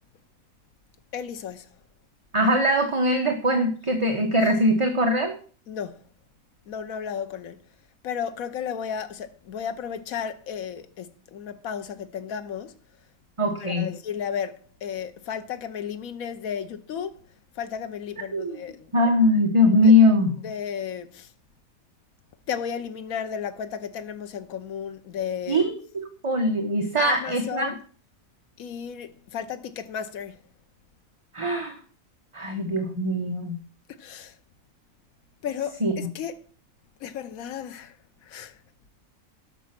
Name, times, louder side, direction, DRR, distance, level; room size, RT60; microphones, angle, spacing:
voice 1, 1.1-1.7 5.7-6.0 6.7-7.6 8.0-12.7 13.6-17.2 17.6-18.9 19.8-20.0 20.4-21.3 22.5-25.7 27.0-27.8 28.6-30.4 34.0-34.3 35.4-36.4 37.0-38.0 38.2-38.6, left 8 dB, 80° left, 1.3 m, -33 dB
voice 2, 2.3-5.3 13.4-13.9 18.3-18.6 18.9-20.3 25.5-25.6 26.2-27.7 31.3-31.8 32.3-33.6 35.8-36.1, left 1 dB, 25° right, 1.1 m, -21 dB
12.0 x 6.2 x 5.9 m
omnidirectional pair, 1.5 m